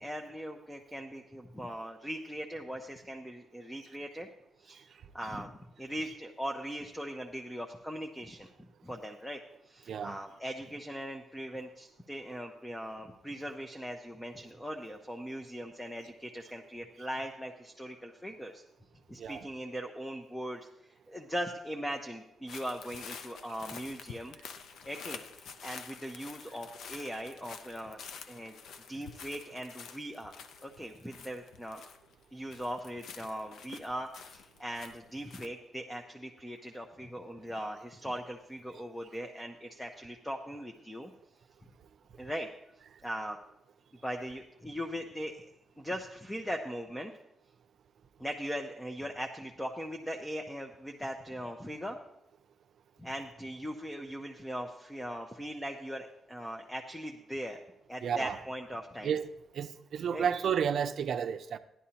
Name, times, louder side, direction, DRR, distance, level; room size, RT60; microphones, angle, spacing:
voice 1, 0.0-4.3 4.6-5.5 5.8-8.5 8.8-9.4 9.6-18.6 19.1-20.7 21.1-24.4 24.8-28.6 28.9-30.3 30.6-31.8 32.3-41.1 42.2-42.5 43.0-43.4 44.0-45.4 45.8-47.1 48.2-52.0 53.0-57.6 57.9-59.1 60.1-60.3, equal, 5° left, 0.6 m, -40 dB
voice 2, 9.9-10.2 19.2-19.5 58.0-58.4 59.0-59.2 59.5-61.6, right 7 dB, 55° right, 0.5 m, -32 dB
sound 1, 22.5-32.2 32.5-35.5, left 6 dB, 75° left, 0.6 m, -48 dB
15.5 x 11.0 x 2.9 m
wide cardioid pair, 160°, 0 cm